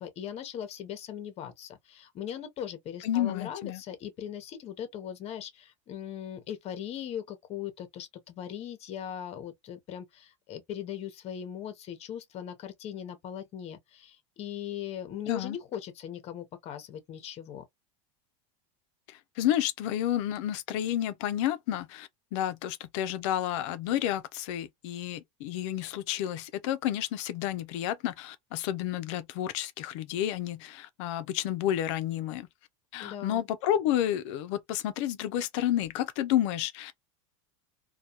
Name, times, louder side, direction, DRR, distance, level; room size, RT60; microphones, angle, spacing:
voice 1, 0.0-17.6 33.0-33.5, left 9 dB, 40° left, 0.8 m, -39 dB
voice 2, 3.0-3.8 15.3-15.6 19.1-32.5 32.9-37.1, left 12 dB, 70° left, 0.5 m, -30 dB
2.3 x 2.2 x 2.8 m
supercardioid pair, 120°, 16 cm